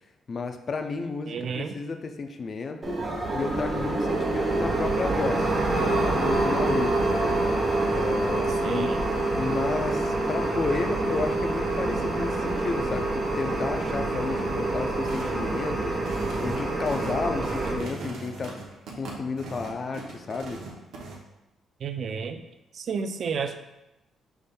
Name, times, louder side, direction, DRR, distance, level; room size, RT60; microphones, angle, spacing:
voice 1, 0.3-3.0 3.3-7.4 7.9-9.0 9.4-16.0 16.4-18.6 18.9-20.6, left 4 dB, 45° left, 6 dB, 0.4 m, -32 dB
voice 2, 1.3-1.7 8.6-9.0 21.8-22.4 22.8-23.6, right 6 dB, 55° right, 8 dB, 0.3 m, -31 dB
sound 1, 2.8-17.8, right 2 dB, 35° right, 0.8 m, -26 dB
sound 2, 15.0-15.4 15.9-21.2, right 3 dB, 75° right, 0.7 m, -40 dB
5.4 x 3.4 x 2.2 m, 0.97 s
cardioid pair, 90°, 0 cm